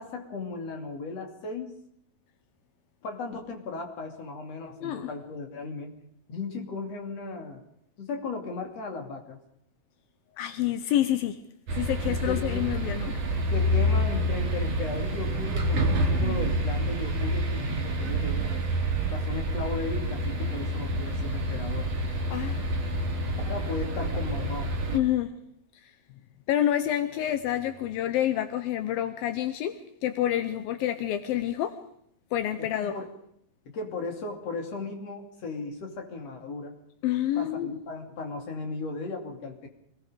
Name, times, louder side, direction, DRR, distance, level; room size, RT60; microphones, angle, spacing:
voice 1, 0.0-1.7 3.0-5.9 6.3-7.6 8.0-9.4 12.1-12.6 13.4-18.5 19.1-21.9 23.5-24.7 32.6-33.1 33.7-36.8 37.4-39.7, left 3 dB, 45° left, 3 dB, 3.8 m, -36 dB
voice 2, 10.4-11.4 11.8-13.2 22.3-22.7 24.9-25.3 26.5-29.7 30.0-31.7 32.3-33.0 37.0-37.7, left 12 dB, 80° left, 9 dB, 2.8 m, -28 dB
sound 1, 11.7-25.0, right 1 dB, 50° right, 4.1 m, -28 dB
26.0 x 19.5 x 5.1 m, 0.70 s
omnidirectional pair, 4.1 m